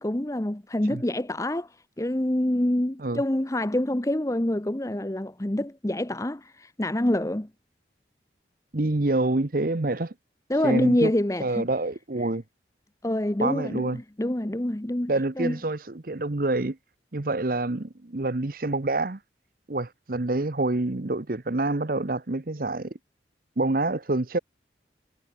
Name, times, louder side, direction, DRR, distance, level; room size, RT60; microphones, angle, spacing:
voice 1, 0.0-7.5 10.5-11.7 12.2-12.3 13.0-15.6, left 1 dB, 15° left, 0.8 m, -26 dB
voice 2, 8.7-10.1 10.6-11.1 11.4-12.4 13.4-14.0 15.1-16.8 17.1-19.2 19.7-22.9 23.6-24.4, right 2 dB, 50° right, 0.9 m, -27 dB
head